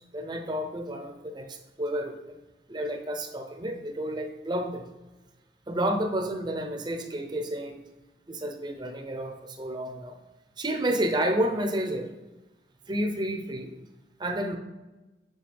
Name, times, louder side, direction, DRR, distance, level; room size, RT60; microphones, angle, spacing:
voice 1, 0.1-2.4 2.7-4.9 5.7-7.8 8.3-10.2 10.6-12.1 12.9-13.7 14.2-14.6, right 1 dB, 25° right, 5 dB, 0.7 m, -30 dB
7.6 x 6.0 x 3.4 m, 1.1 s
head